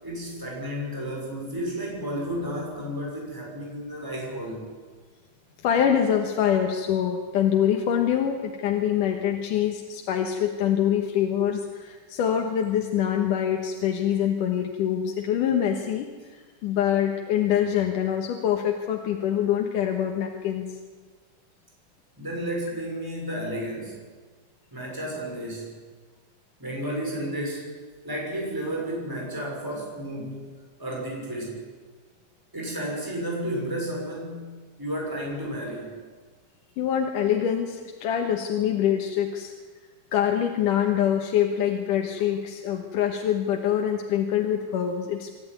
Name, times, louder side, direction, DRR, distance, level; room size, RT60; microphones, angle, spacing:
voice 1, 0.0-4.7 22.2-24.0 24.7-25.8 26.6-27.8 28.0-30.4 30.8-31.6 32.5-36.0, equal, 5° right, -2 dB, 6.0 m, -32 dB
voice 2, 5.6-20.8 36.8-39.5 40.1-45.4, left 9 dB, 85° left, 2 dB, 2.8 m, -25 dB
26.0 x 12.5 x 9.5 m, 1.4 s
omnidirectional pair, 3.7 m